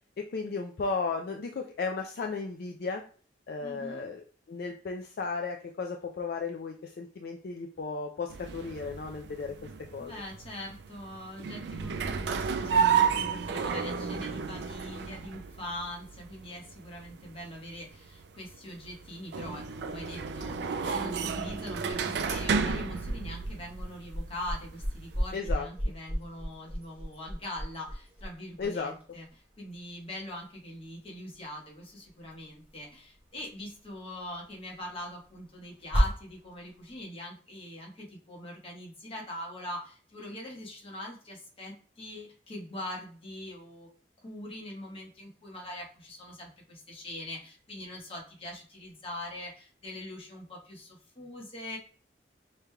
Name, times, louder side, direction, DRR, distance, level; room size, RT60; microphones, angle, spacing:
voice 1, 0.2-3.0 3.5-4.2 4.5-10.1 25.3-25.7 28.6-28.9, left 4 dB, 55° left, 3 dB, 0.4 m, -35 dB
voice 2, 3.6-4.1 10.0-29.3 29.6-43.9 44.2-51.8, left 1 dB, 30° left, -2 dB, 1.0 m, -42 dB
sound 1, 8.3-25.4, right 6 dB, 60° right, 0.3 m, -32 dB
sound 2, 22.9-37.0, equal, 10° right, 1.0 m, -36 dB
5.0 x 3.1 x 2.2 m, 0.43 s
head